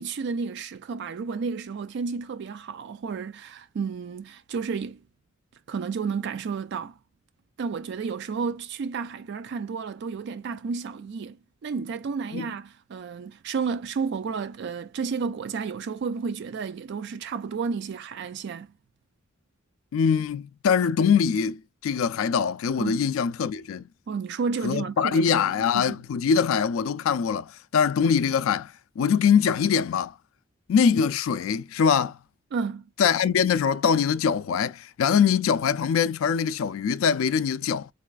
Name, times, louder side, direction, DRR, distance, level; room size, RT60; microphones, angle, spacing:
voice 1, 0.0-5.0 5.7-7.0 7.6-11.4 11.6-18.7 22.8-23.1 24.1-26.0 32.5-32.9, right 5 dB, 55° right, 0.3 m, -31 dB
voice 2, 19.9-21.6 21.8-23.9 24.6-30.1 30.7-32.2 33.0-37.9, left 6 dB, 80° left, 0.4 m, -23 dB
4.7 x 2.3 x 2.3 m
head